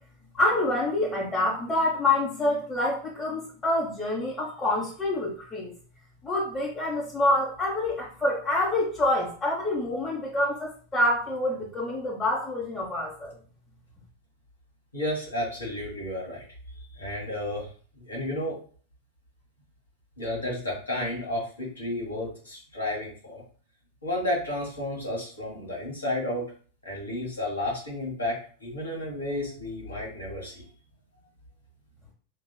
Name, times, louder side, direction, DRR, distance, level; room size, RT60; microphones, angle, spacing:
voice 1, 0.3-5.7 6.2-13.3, left 1 dB, 15° left, -7 dB, 1.4 m, -27 dB
voice 2, 14.9-16.4 16.9-17.7 17.9-18.6 20.2-23.4 24.0-26.5 26.8-30.6, left 1 dB, 80° left, -4 dB, 2.0 m, -32 dB
5.1 x 3.0 x 2.3 m, 0.43 s
figure-of-eight pair, 90°, 0 cm